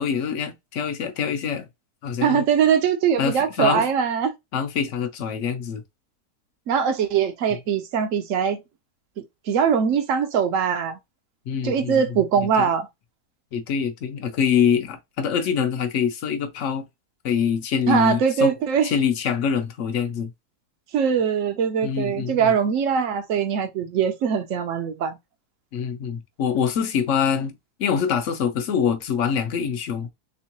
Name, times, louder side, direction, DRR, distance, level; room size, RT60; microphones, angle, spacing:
voice 1, 0.0-1.7 2.0-2.5 3.2-3.9 4.5-5.8 11.5-12.0 12.6-12.7 13.5-16.8 17.2-18.5 18.8-20.3 21.8-22.5 25.7-27.5 27.8-30.1, left 7 dB, 60° left, 0.9 m, -24 dB
voice 2, 2.2-4.3 6.7-8.6 9.5-11.0 11.6-12.9 17.9-18.9 20.9-25.2, right 7 dB, 60° right, 0.9 m, -22 dB
3.5 x 3.0 x 2.9 m
omnidirectional pair, 1.7 m